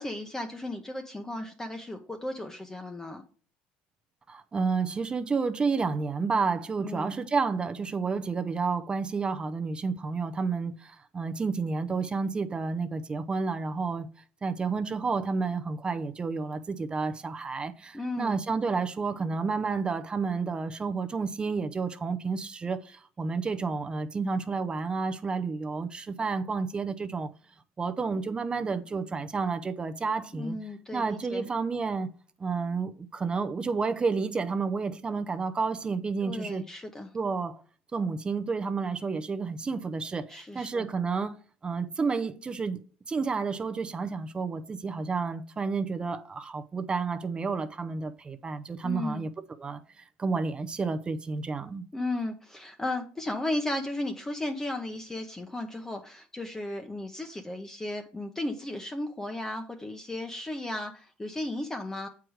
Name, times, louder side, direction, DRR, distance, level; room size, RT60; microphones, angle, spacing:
voice 1, 0.0-3.2 6.8-7.2 17.9-18.4 30.3-31.5 36.2-37.1 40.3-40.9 48.8-49.3 51.9-62.1, left 1 dB, 10° left, 0.8 m, -35 dB
voice 2, 4.3-14.1 14.4-27.3 27.8-30.6 30.9-32.1 32.4-36.7 37.1-37.6 37.9-41.3 41.6-42.8 43.1-49.3 49.6-49.8 50.2-51.8, right 4 dB, 25° right, 0.6 m, -30 dB
7.6 x 4.7 x 4.8 m
supercardioid pair, 100°, 4 cm